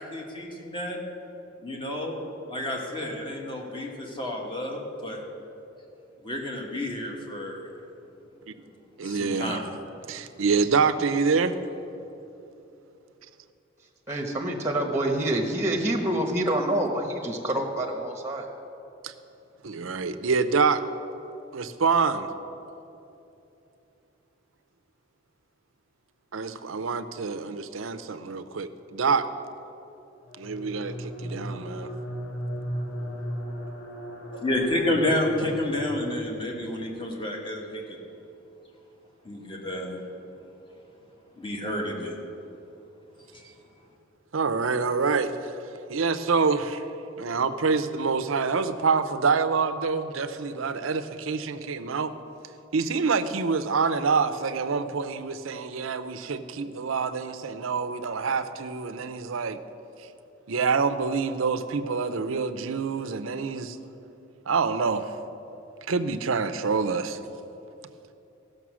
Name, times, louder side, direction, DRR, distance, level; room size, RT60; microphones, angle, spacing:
voice 1, 0.0-1.0 1.6-2.2 2.5-5.2 6.2-7.7 9.0-10.1 34.4-38.0 39.2-40.0 41.4-42.2 43.3-43.5, left 1 dB, 25° left, 0 dB, 1.6 m, -30 dB
voice 2, 9.0-9.6 10.1-11.5 19.0-19.1 19.6-20.8 21.5-22.3 26.3-29.3 30.4-31.9 44.3-45.3 45.9-46.8 47.2-52.1 52.7-59.6 60.5-63.8 64.5-65.1 65.9-67.2, right 5 dB, 80° right, 11 dB, 0.6 m, -26 dB
voice 3, 14.1-18.5, right 1 dB, 15° right, 2 dB, 1.0 m, -27 dB
sound 1, 30.2-37.2, equal, 80° left, 2.2 m, -36 dB
15.5 x 6.6 x 6.2 m, 2.9 s
head